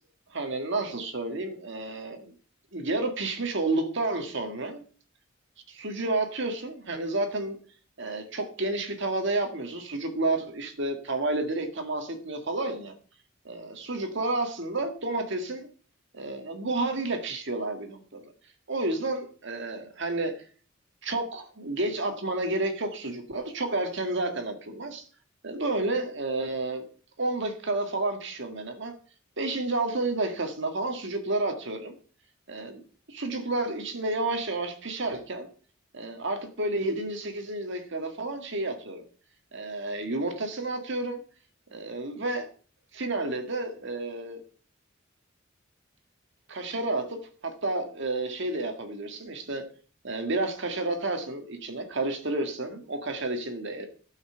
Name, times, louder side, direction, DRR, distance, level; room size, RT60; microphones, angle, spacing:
voice 1, 0.3-2.3 2.7-4.8 5.7-7.6 8.0-12.9 13.5-15.7 16.1-18.2 18.7-20.3 21.0-25.0 25.4-26.8 27.2-28.9 29.4-32.0 32.5-32.8 33.1-35.5 35.9-39.0 39.5-41.2 41.7-42.5 42.9-44.4 46.5-49.6 50.0-53.9, right 2 dB, 65° right, 5 dB, 1.9 m, -30 dB
12.5 x 5.8 x 5.8 m, 0.41 s
head